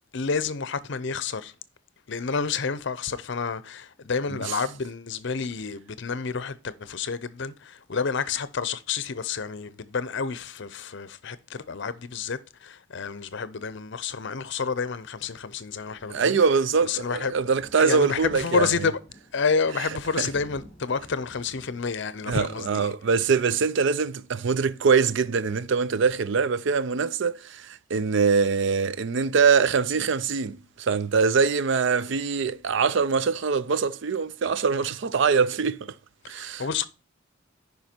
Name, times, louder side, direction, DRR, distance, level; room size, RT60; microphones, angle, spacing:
voice 1, 0.1-1.5 2.1-16.4 16.8-17.3 17.8-19.0 19.3-22.9 36.2-36.9, left 5 dB, 65° left, 0.7 m, -29 dB
Thunder, 15.5-24.2 24.5-24.8 25.1-25.2 25.4-25.5, left 1 dB, 20° left, 2.9 m, -53 dB
voice 2, 16.1-18.9 20.2-20.3 22.3-36.0 36.3-36.7, right 5 dB, 65° right, 0.5 m, -23 dB
9.4 x 5.4 x 4.4 m
head